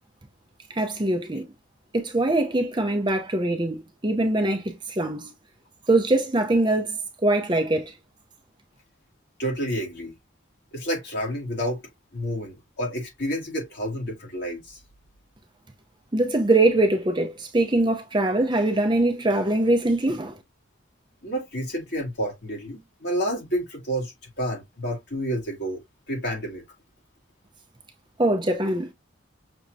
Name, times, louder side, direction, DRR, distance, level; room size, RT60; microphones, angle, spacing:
voice 1, 0.7-1.5 1.9-5.3 5.9-7.9 16.1-20.4 28.2-28.9, right 2 dB, 25° right, 0.7 m, -23 dB
voice 2, 9.4-10.1 10.7-11.8 12.1-14.8 21.2-25.8 26.1-26.6, equal, 55° left, 2.4 m, -29 dB
6.2 x 2.9 x 2.6 m
head